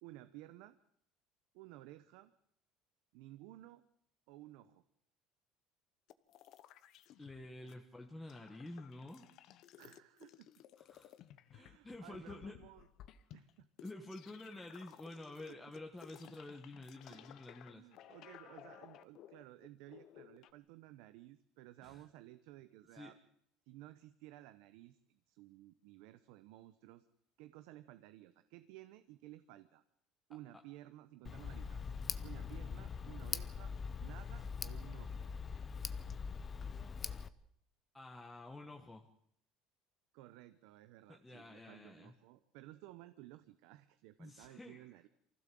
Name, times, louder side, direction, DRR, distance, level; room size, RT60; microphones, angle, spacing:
voice 1, 0.0-0.8 1.5-2.3 3.1-3.8 4.3-4.8 7.6-7.8 9.8-10.5 11.5-12.9 13.3-13.7 15.5-15.6 17.1-17.3 17.6-23.2 23.7-27.1 27.4-29.8 30.3-31.8 32.2-35.1 40.1-45.1, right 15 dB, 75° right, 11 dB, 0.9 m, -56 dB
sound 1, 6.1-7.7 8.0-20.5, left 12 dB, 50° left, 1.0 m, -58 dB
voice 2, 7.2-9.3 10.8-11.1 11.5-12.6 13.8-17.9 21.8-22.0 22.9-23.1 37.9-39.1 41.1-42.1 44.2-45.1, left 2 dB, 10° left, 2 dB, 1.4 m, -50 dB
Tick, 31.2-37.3, left 6 dB, 25° left, 0.8 m, -42 dB
24.0 x 15.5 x 7.7 m, 0.69 s
cardioid pair, 150°, 0 cm